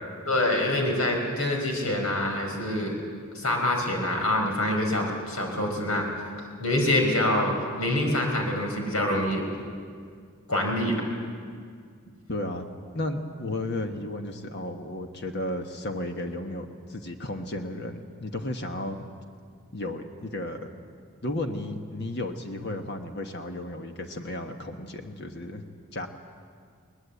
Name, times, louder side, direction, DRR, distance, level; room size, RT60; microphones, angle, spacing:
voice 1, 0.3-2.9 3.3-6.1 6.6-9.4 10.5-11.0, left 1 dB, 80° left, 2 dB, 4.6 m, -25 dB
voice 2, 12.3-12.7 12.9-19.0 19.7-20.6 21.2-25.7 25.9-26.1, left 1 dB, 50° left, 5 dB, 1.3 m, -33 dB
21.5 x 20.0 x 8.2 m, 2.1 s
head